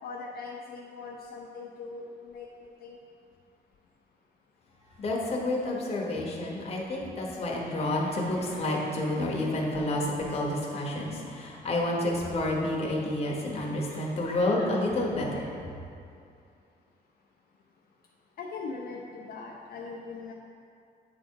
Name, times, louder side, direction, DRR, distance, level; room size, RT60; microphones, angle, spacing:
voice 1, 0.0-2.5 2.8-3.0 18.4-20.3, left 4 dB, 65° left, -2 dB, 0.5 m, -40 dB
voice 2, 5.0-15.6, left 1 dB, 35° left, -3 dB, 1.0 m, -29 dB
9.0 x 3.5 x 4.5 m, 2.4 s
wide cardioid pair, 180°, 17 cm